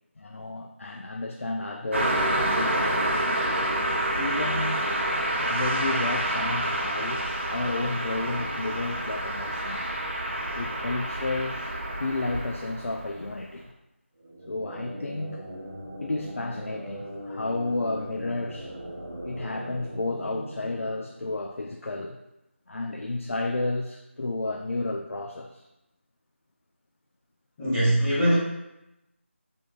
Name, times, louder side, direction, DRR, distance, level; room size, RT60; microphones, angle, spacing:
voice 1, 0.2-3.2 4.1-4.8 5.5-10.0 10.5-11.7 12.0-13.7 14.5-15.4 16.0-18.7 19.2-22.2 22.7-25.6 28.1-28.2, left 2 dB, 75° left, 2 dB, 0.4 m, -32 dB
Car passing by, 1.9-13.4, right 1 dB, 60° right, 0.9 m, -28 dB
sound 1, 14.2-21.8, equal, 30° right, 0.7 m, -40 dB
voice 2, 27.6-28.4, right 1 dB, 10° left, -13 dB, 0.5 m, -22 dB
5.2 x 3.5 x 2.4 m, 0.91 s
figure-of-eight pair, 170°, 7 cm